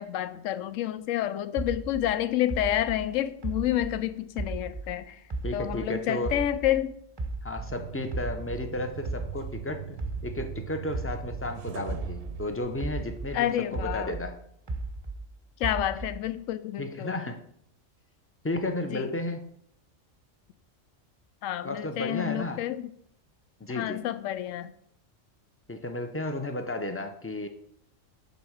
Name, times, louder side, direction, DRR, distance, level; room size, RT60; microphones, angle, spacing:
voice 1, 0.0-5.2 5.5-7.0 13.3-14.2 15.6-17.2 18.8-19.2 21.4-22.9 23.7-24.7, left 12 dB, 80° left, 0.9 m, -29 dB
sound 1, 1.6-5.0 5.3-7.8 8.1-12.5 12.8-15.3 15.6-16.3, right 2 dB, 25° right, 0.7 m, -35 dB
voice 2, 5.4-6.4 7.4-14.4 16.8-17.4 18.4-19.4 21.6-22.6 23.6-24.0 25.7-27.5, left 2 dB, 15° left, 0.5 m, -33 dB
sound 2, 7.6-13.5, right 11 dB, 70° right, 0.8 m, -41 dB
7.9 x 4.1 x 6.4 m
omnidirectional pair, 1.3 m